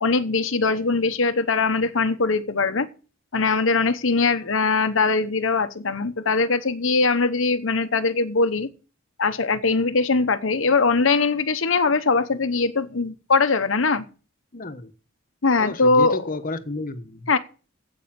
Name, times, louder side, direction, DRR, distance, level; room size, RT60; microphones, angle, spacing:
voice 1, 0.0-2.9 3.3-8.7 9.2-14.0 15.4-16.2 17.3-17.4, left 4 dB, 70° left, 0.9 m, -21 dB
voice 2, 14.5-14.9 15.6-17.3, left 2 dB, 45° left, 1.2 m, -31 dB
9.4 x 8.3 x 7.6 m
head